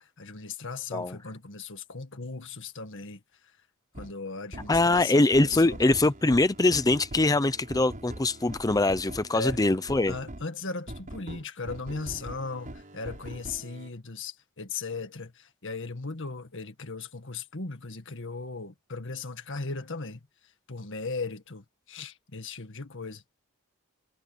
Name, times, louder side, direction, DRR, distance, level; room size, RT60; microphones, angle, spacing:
voice 1, 0.0-3.2 4.0-5.8 9.3-9.7 10.1-20.2 20.7-23.2, left 4 dB, 60° left, 1.8 m, -37 dB
sound 1, 3.9-4.1 4.5-10.5 10.9-13.9, right 1 dB, 40° right, 5.7 m, -42 dB
voice 2, 4.7-10.1, left 2 dB, 15° left, 0.6 m, -23 dB
head